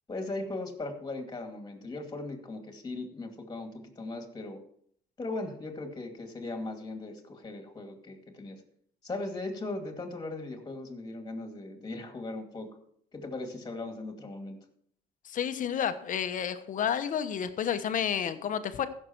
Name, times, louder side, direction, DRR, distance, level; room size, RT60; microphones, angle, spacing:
voice 1, 0.1-4.6 5.2-8.6 9.0-12.7 13.1-14.6, left 2 dB, 25° left, 4 dB, 2.5 m, -38 dB
voice 2, 15.2-18.9, left 8 dB, 50° left, 10 dB, 1.1 m, -30 dB
15.5 x 6.6 x 4.5 m, 0.65 s
cardioid pair, 110°, 17 cm